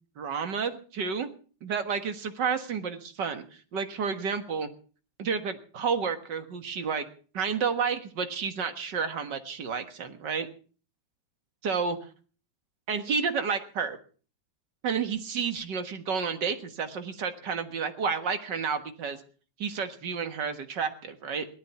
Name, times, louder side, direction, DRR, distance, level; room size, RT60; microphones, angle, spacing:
voice 1, 0.2-1.3 1.6-3.4 3.7-4.7 5.2-7.1 7.3-10.5 11.6-12.0 12.9-14.0 14.8-19.2 19.6-21.5, right 6 dB, 70° right, 8 dB, 2.1 m, -30 dB
18.0 x 12.5 x 5.8 m, 0.41 s
omnidirectional pair, 2.0 m